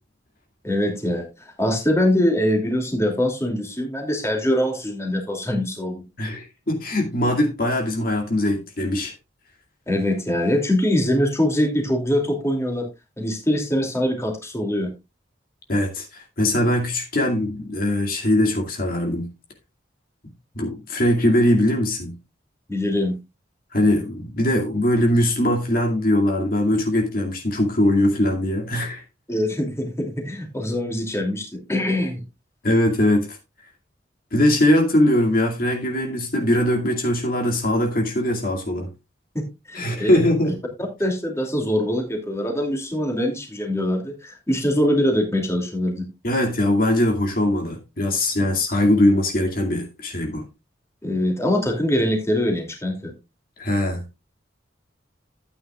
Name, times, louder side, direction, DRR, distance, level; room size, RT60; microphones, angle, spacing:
voice 1, 0.6-6.1 9.9-12.9 13.2-14.9 22.7-23.2 29.3-32.2 39.3-40.2 41.0-46.1 51.0-53.1, left 1 dB, 15° left, 2.7 m, -23 dB
voice 2, 6.2-9.1 15.7-19.3 20.5-22.2 23.7-29.0 32.6-33.4 34.3-38.9 39.7-40.6 46.2-50.4 53.6-54.1, left 1 dB, 50° left, 2.4 m, -21 dB
13.5 x 9.0 x 2.4 m
head